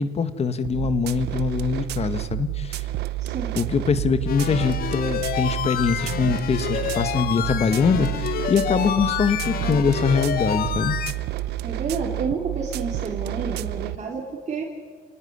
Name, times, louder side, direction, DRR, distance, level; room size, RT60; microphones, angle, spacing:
voice 1, 0.0-2.9 3.5-11.0, left 5 dB, 40° left, 11 dB, 1.8 m, -23 dB
sound 1, 0.6-14.0, right 15 dB, 75° right, 0.8 m, -30 dB
voice 2, 3.2-3.6 11.6-14.6, right 5 dB, 40° right, -1 dB, 3.9 m, -30 dB
sound 2, 4.3-11.1, left 10 dB, 65° left, 1.5 m, -29 dB
29.5 x 19.0 x 9.7 m, 1.5 s
cardioid pair, 110°, 17 cm